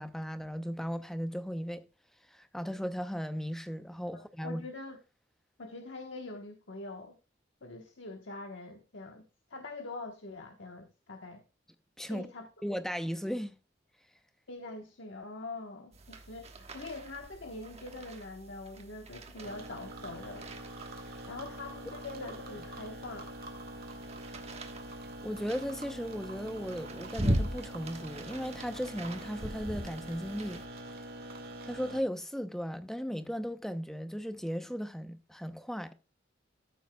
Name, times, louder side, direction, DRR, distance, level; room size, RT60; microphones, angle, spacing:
voice 1, 0.0-1.8 2.3-4.6 12.0-12.3 12.6-13.6 21.1-21.2 25.2-30.6 31.7-35.9, equal, ahead, 0.7 m, -36 dB
voice 2, 4.1-5.0 5.6-7.2 7.6-9.2 9.5-11.4 12.1-12.5 14.5-20.5 21.3-23.3, left 3 dB, 85° left, 1.2 m, -44 dB
sound 1, 15.9-30.7, equal, 35° right, 1.3 m, -40 dB
sound 2, 19.4-32.0, right 1 dB, 55° right, 2.1 m, -45 dB
14.0 x 7.6 x 2.3 m
head